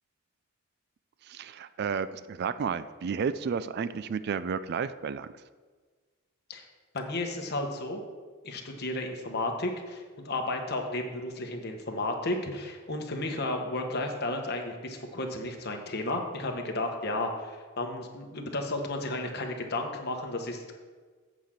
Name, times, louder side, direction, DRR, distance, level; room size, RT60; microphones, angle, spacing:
voice 1, 1.2-5.3, right 6 dB, 50° right, 14 dB, 0.3 m, -32 dB
voice 2, 6.9-8.0 8.4-20.7, left 2 dB, 50° left, 3 dB, 1.1 m, -33 dB
8.1 x 5.0 x 7.4 m, 1.5 s
head